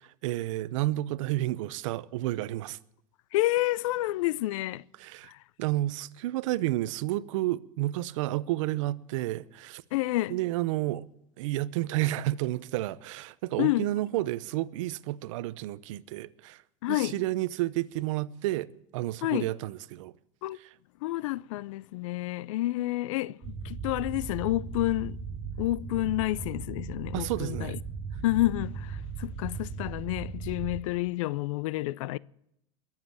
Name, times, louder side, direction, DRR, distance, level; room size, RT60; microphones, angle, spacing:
voice 1, 0.0-2.8 5.0-5.3 5.6-9.8 10.3-11.0 11.4-16.6 16.9-18.7 18.9-20.1 20.6-20.7 27.1-27.8, right 16 dB, 70° right, 0.7 m, -31 dB
voice 2, 3.3-4.8 5.3-5.4 9.9-10.4 13.6-13.9 16.8-17.2 19.2-19.5 20.4-20.6 21.0-25.2 25.6-27.8 28.2-32.2, left 17 dB, 75° left, 0.5 m, -29 dB
sound 1, 23.4-30.8, right 5 dB, 40° right, 4.7 m, -38 dB
21.5 x 7.4 x 7.6 m
supercardioid pair, 135°, 17 cm